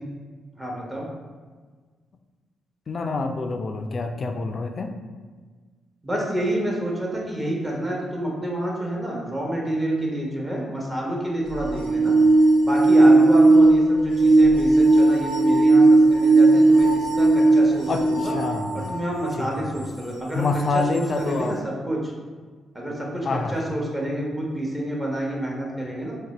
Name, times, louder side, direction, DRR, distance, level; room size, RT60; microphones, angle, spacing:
voice 1, 0.5-1.1 6.0-12.1 12.6-18.3 18.7-20.5 20.7-22.1 22.7-26.1, right 1 dB, 15° right, -3 dB, 0.9 m, -28 dB
voice 2, 2.9-4.9 17.9-19.0 19.4-19.7 20.3-21.6 23.2-23.6, left 3 dB, 50° left, 5 dB, 0.3 m, -27 dB
sound 1, 11.5-19.1 19.8-19.9 20.9-21.0, right 2 dB, 70° right, 1.4 m, -17 dB
2.6 x 2.1 x 4.0 m, 1.5 s
supercardioid pair, 50°, 0 cm